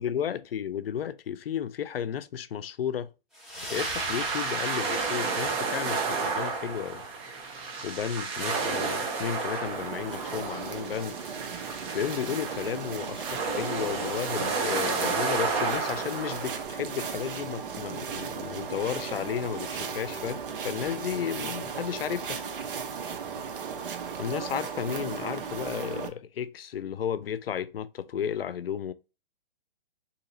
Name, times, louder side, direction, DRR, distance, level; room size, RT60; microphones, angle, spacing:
voice 1, 0.0-3.1 3.7-7.0 7.8-11.2 11.9-22.4 24.2-28.9, left 8 dB, 85° left, 0.5 m, -33 dB
sound 1, 3.3-6.4, equal, ahead, 1.4 m, -41 dB
sound 2, 3.7-16.6, right 4 dB, 20° right, 0.6 m, -31 dB
sound 3, 9.6-26.1, right 6 dB, 65° right, 0.8 m, -36 dB
4.0 x 2.8 x 2.6 m
hypercardioid pair, 140°, 29 cm